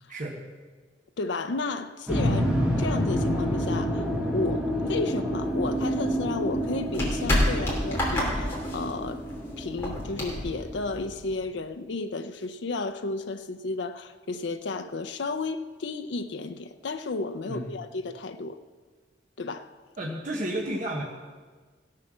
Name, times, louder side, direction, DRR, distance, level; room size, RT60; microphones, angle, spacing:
voice 1, 1.2-9.3 9.6-18.6 19.4-19.7, left 3 dB, 75° left, 8 dB, 0.5 m, -33 dB
sound 1, 2.1-11.0, equal, 5° right, 1.7 m, -29 dB
sound 2, 5.5-11.4, left 1 dB, 15° left, 3.3 m, -30 dB
voice 2, 20.0-21.0, right 1 dB, 45° right, -1 dB, 1.2 m, -31 dB
16.0 x 7.6 x 6.1 m, 1.4 s
head